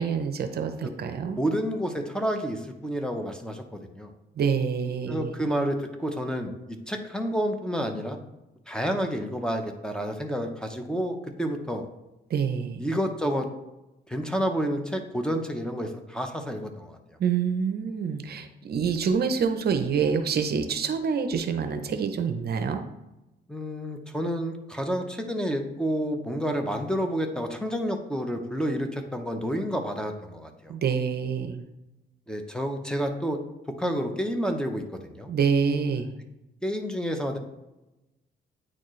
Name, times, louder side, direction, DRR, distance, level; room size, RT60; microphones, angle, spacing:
voice 1, 0.0-1.4 4.4-5.3 12.3-12.8 17.2-22.8 30.7-31.6 35.3-36.1, right 6 dB, 55° right, 8 dB, 0.7 m, -26 dB
voice 2, 1.4-3.6 3.9-4.1 5.1-6.5 6.9-8.2 8.7-11.9 12.8-13.5 14.1-17.0 23.5-30.7 32.3-33.4 33.8-35.3 36.6-37.4, equal, 5° left, 5 dB, 0.8 m, -29 dB
8.9 x 4.2 x 3.2 m, 0.96 s
cardioid pair, 90°, 20 cm